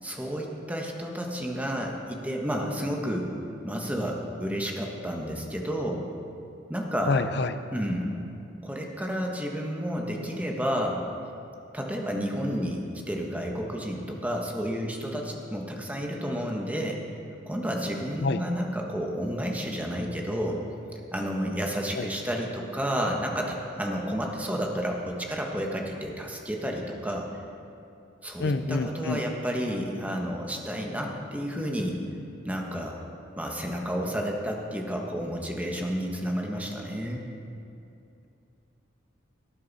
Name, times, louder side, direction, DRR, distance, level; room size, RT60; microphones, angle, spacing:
voice 1, 0.0-3.3 3.6-6.0 6.7-7.2 7.7-8.1 8.6-11.0 11.7-17.0 17.4-20.6 21.1-27.3 28.2-32.0 32.4-33.0 33.3-37.2, equal, 10° right, 0 dB, 1.3 m, -31 dB
voice 2, 7.1-7.5 18.2-18.4 28.4-29.2, left 3 dB, 60° left, 10 dB, 0.6 m, -26 dB
18.0 x 10.5 x 4.1 m, 2.7 s
head